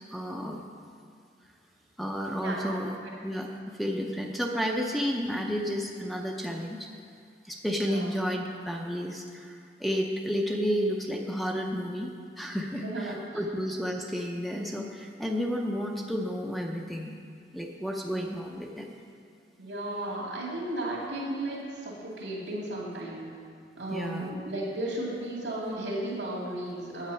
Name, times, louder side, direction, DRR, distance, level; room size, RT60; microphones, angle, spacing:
voice 1, 0.1-0.6 2.0-3.0 3.2-6.9 7.4-12.1 12.4-17.1 17.5-18.9 23.9-24.3, equal, ahead, 1 dB, 0.6 m, -31 dB
voice 2, 2.4-3.1 7.8-8.2 12.7-13.5 19.6-23.3 23.8-27.1, right 1 dB, 85° right, -3 dB, 2.4 m, -35 dB
8.2 x 8.0 x 5.6 m, 2.2 s
head